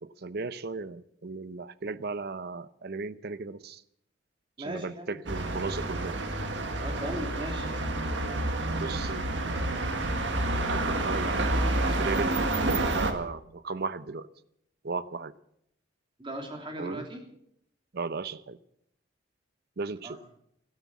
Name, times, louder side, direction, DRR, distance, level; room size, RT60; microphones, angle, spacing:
voice 1, 0.0-3.8 4.6-6.2 8.7-9.9 10.7-12.5 12.9-14.3 14.8-15.3 16.8-17.1 17.9-18.6 19.8-20.2, right 4 dB, 55° right, 15 dB, 0.7 m, -36 dB
voice 2, 4.6-5.2 6.8-7.7 16.2-17.2 20.0-20.2, right 1 dB, 25° right, 3 dB, 3.0 m, -38 dB
sound 1, 5.3-13.1, right 2 dB, 75° right, 1.8 m, -29 dB
13.5 x 13.0 x 7.3 m, 0.73 s
head